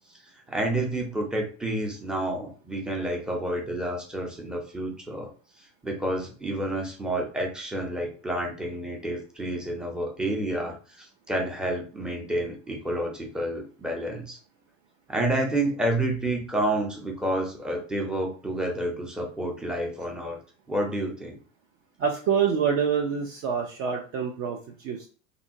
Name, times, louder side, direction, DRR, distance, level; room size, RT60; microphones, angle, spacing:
voice 1, 0.5-5.3 5.8-14.4 15.1-20.4 20.7-21.4, right 1 dB, ahead, 0 dB, 0.7 m, -29 dB
voice 2, 22.0-25.1, right 7 dB, 35° right, 3 dB, 0.4 m, -26 dB
2.7 x 2.6 x 2.7 m, 0.38 s
figure-of-eight pair, 80°, 40 cm